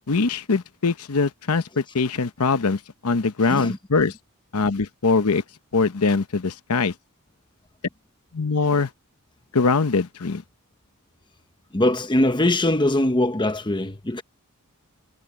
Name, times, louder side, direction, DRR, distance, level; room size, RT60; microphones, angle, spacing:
voice 1, 0.1-4.1 4.5-5.4 5.7-6.9 8.3-8.9 9.5-10.4, left 4 dB, 80° left, 0.9 m, -22 dB
voice 2, 3.5-3.8 11.7-14.2, left 1 dB, 20° left, 1.0 m, -21 dB
head